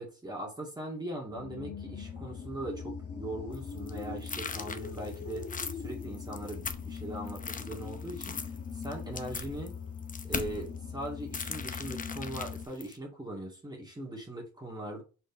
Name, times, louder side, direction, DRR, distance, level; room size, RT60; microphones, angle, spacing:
voice 1, 0.0-5.5 5.8-9.7 10.2-15.0, right 1 dB, 15° right, -1 dB, 2.2 m, -40 dB
sound 1, 1.3-12.7, left 6 dB, 50° left, 1.8 m, -41 dB
sound 2, 3.5-7.0 7.3-10.7 11.3-13.0, left 5 dB, 25° left, 0.8 m, -39 dB
5.1 x 4.5 x 4.3 m, 0.33 s
cardioid pair, 90°, 30 cm